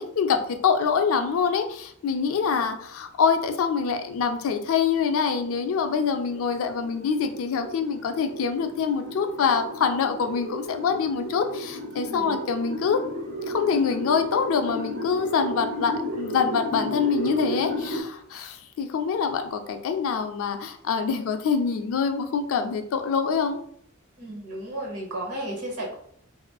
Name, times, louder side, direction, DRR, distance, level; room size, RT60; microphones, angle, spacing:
voice 1, 0.0-13.0 13.5-23.6, left 6 dB, 65° left, 6 dB, 0.3 m, -25 dB
sound 1, 4.0-18.0, equal, 60° right, 0.7 m, -34 dB
voice 2, 12.0-12.4 24.2-26.0, right 1 dB, 85° right, -1 dB, 0.9 m, -34 dB
2.4 x 2.4 x 2.2 m, 0.65 s
head